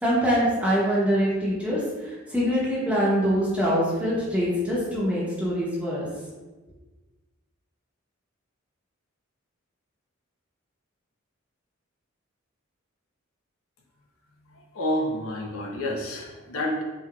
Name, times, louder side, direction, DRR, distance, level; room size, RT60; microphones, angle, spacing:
voice 1, 0.0-6.0, equal, 5° right, -7 dB, 0.8 m, -24 dB
voice 2, 14.5-16.8, left 1 dB, 85° left, -1 dB, 0.7 m, -29 dB
4.7 x 2.7 x 2.3 m, 1.2 s
head